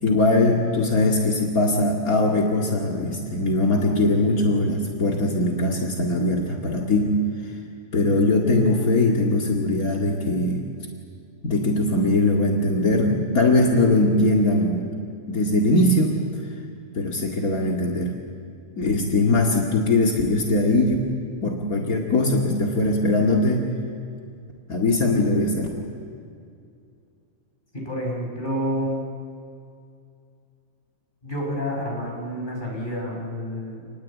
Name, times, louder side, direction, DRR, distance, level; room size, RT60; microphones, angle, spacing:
voice 1, 0.0-7.2 7.9-10.7 11.4-14.8 15.3-16.2 16.9-18.1 18.8-21.1 21.4-23.6 24.7-25.7, left 2 dB, 80° left, -1 dB, 2.7 m, -21 dB
voice 2, 27.7-29.0 31.2-33.9, equal, 35° left, -1 dB, 5.7 m, -29 dB
28.0 x 20.0 x 8.4 m, 2.4 s
omnidirectional pair, 1.5 m